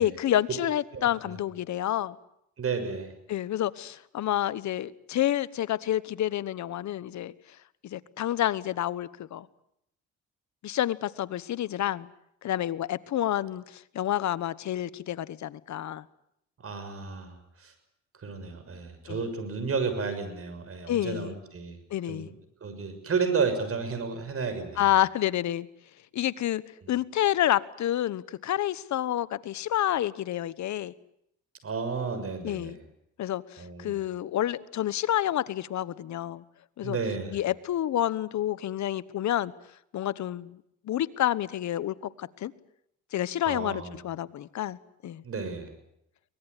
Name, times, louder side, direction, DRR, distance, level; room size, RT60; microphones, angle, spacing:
voice 1, 0.0-2.2 3.3-7.3 7.8-9.5 10.6-12.1 12.4-16.0 19.1-19.2 20.9-21.3 21.9-22.3 24.8-25.7 26.1-26.6 26.9-30.9 32.4-32.8 33.2-36.4 36.8-37.0 37.3-39.5 39.9-40.6 40.8-42.5 43.1-44.8 45.0-45.2, left 12 dB, 65° left, 16 dB, 1.2 m, -29 dB
voice 2, 0.9-1.4 2.6-3.1 16.6-17.7 18.2-21.8 22.1-22.3 22.6-24.9 26.8-26.9 31.6-32.8 33.6-34.0 36.8-37.3 43.5-43.9 45.2-45.7, right 5 dB, 50° right, 9 dB, 6.6 m, -32 dB
24.0 x 19.5 x 9.7 m, 0.77 s
cardioid pair, 90°, 30 cm